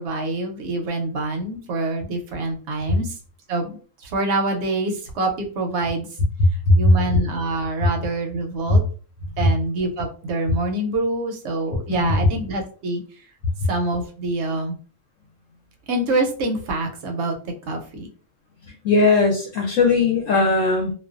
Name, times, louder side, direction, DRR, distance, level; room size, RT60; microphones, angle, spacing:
voice 1, 0.0-3.2 3.5-6.1 6.7-8.8 9.4-13.0 13.7-14.8 15.9-18.1, right 2 dB, 65° right, 3 dB, 0.7 m, -26 dB
voice 2, 18.8-20.9, left 3 dB, 70° left, -1 dB, 0.9 m, -18 dB
2.4 x 2.1 x 2.4 m, 0.40 s
omnidirectional pair, 1.5 m